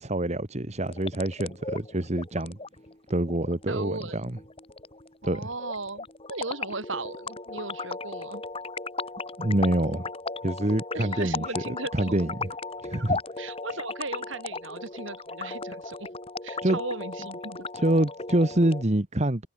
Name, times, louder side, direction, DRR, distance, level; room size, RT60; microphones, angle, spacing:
voice 1, 0.0-2.6 3.1-4.4 5.2-5.5 9.4-10.1 10.4-12.5 12.8-13.2 16.6-16.8 17.7-19.5, right 1 dB, 35° right, 1.5 m, -26 dB
sound 1, 0.8-18.8, left 3 dB, 30° left, 6.4 m, -36 dB
voice 2, 3.7-4.2 5.2-8.4 10.9-12.2 13.4-16.1 16.4-17.7, right 3 dB, 70° right, 4.4 m, -36 dB
head